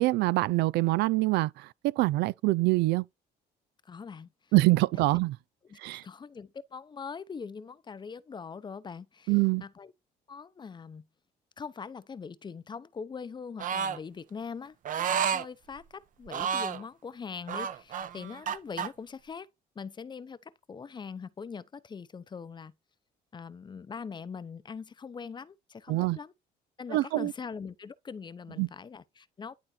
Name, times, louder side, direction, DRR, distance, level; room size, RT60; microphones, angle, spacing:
voice 1, 0.0-3.0 4.5-5.4 5.8-6.0 9.3-9.6 25.9-26.2 26.9-27.3 28.6-28.7, right 20 dB, 85° right, 0.5 m, -25 dB
voice 2, 3.9-4.3 4.9-5.0 5.7-9.9 10.3-11.1 11.6-19.5 19.8-22.7 23.3-26.3 26.8-29.5, left 5 dB, 25° left, 0.7 m, -42 dB
sound 1, 13.6-14.0 14.8-15.4 16.3-16.8 17.5-18.9, right 7 dB, 50° right, 0.9 m, -30 dB
11.0 x 3.9 x 4.3 m
cardioid pair, 110°, 17 cm